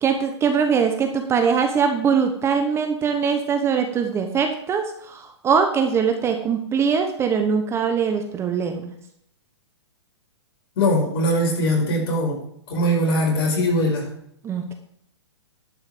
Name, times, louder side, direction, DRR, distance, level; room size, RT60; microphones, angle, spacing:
voice 1, 0.0-8.9 14.4-14.7, right 6 dB, 20° right, 5 dB, 1.0 m, -22 dB
voice 2, 10.8-12.4 12.7-14.1, equal, 50° left, 0 dB, 5.0 m, -21 dB
11.5 x 5.7 x 6.0 m, 0.71 s
hypercardioid pair, 135°, 15 cm